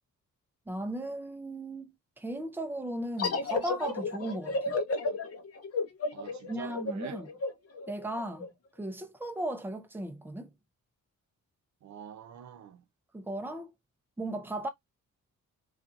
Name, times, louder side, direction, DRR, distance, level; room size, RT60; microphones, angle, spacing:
voice 1, 0.7-4.8 6.5-7.3 7.9-8.5 8.8-10.5 13.1-13.7 14.2-14.7, right 1 dB, 5° right, 0.4 m, -36 dB
sound 1, 3.2-8.5, left 3 dB, 50° left, 0.7 m, -33 dB
voice 2, 6.1-7.2 11.8-12.8, right 9 dB, 60° right, 0.6 m, -45 dB
2.6 x 2.4 x 2.3 m
wide cardioid pair, 135°, 32 cm